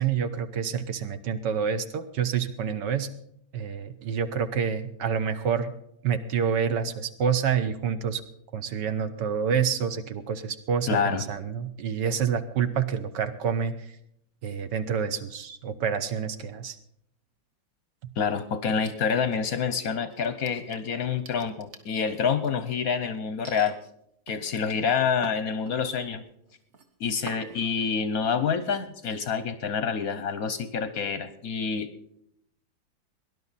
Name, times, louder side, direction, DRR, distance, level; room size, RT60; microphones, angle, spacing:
voice 1, 0.0-3.1 3.5-5.7 6.0-8.2 8.5-13.9 14.4-16.8, right 7 dB, 65° right, 10 dB, 1.3 m, -28 dB
voice 2, 10.9-11.2 18.2-23.8 24.3-26.2 27.0-31.9, left 6 dB, 60° left, 11 dB, 1.0 m, -27 dB
sound 1, 18.7-19.7 20.1-22.7 23.4-23.7 24.3-26.1 26.5-26.9 27.3-27.8, right 3 dB, 40° right, 1.4 m, -46 dB
19.0 x 11.0 x 4.1 m, 0.72 s
omnidirectional pair, 2.2 m